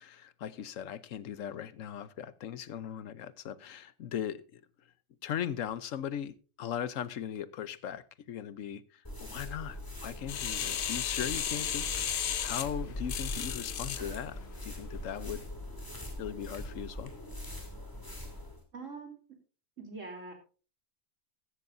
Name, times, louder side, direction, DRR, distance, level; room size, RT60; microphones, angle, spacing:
voice 1, 0.0-4.6 5.2-15.4 16.2-17.1, left 9 dB, 80° left, 16 dB, 1.2 m, -39 dB
sound 1, 9.0-18.6, left 1 dB, 15° left, 2.8 m, -42 dB
grinder on metal, 10.3-14.0 14.6-14.7, left 9 dB, 50° left, 0.7 m, -34 dB
voice 2, 18.7-19.2 19.8-20.3, right 3 dB, 75° right, 4 dB, 3.4 m, -43 dB
15.0 x 13.0 x 2.6 m, 0.36 s
omnidirectional pair, 1.3 m